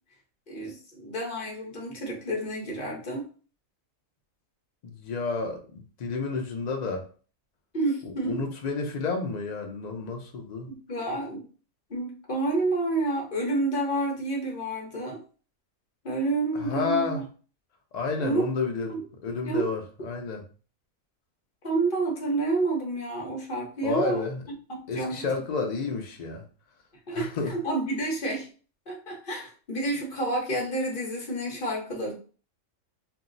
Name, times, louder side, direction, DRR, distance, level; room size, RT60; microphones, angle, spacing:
voice 1, 0.5-3.2 7.7-8.4 10.7-11.4 11.9-15.2 16.0-17.2 18.2-18.4 18.9-19.0 19.4-19.7 21.6-24.2 24.7-25.3 27.1-28.5 28.9-32.1, right 2 dB, 45° left, -1 dB, 0.9 m, -29 dB
voice 2, 4.8-7.1 8.0-10.7 16.6-17.2 17.9-18.9 19.2-20.4 23.8-24.4 24.9-26.4 27.1-27.5, left 4 dB, 60° left, 2 dB, 0.4 m, -30 dB
2.6 x 2.0 x 3.8 m, 0.39 s
omnidirectional pair, 1.4 m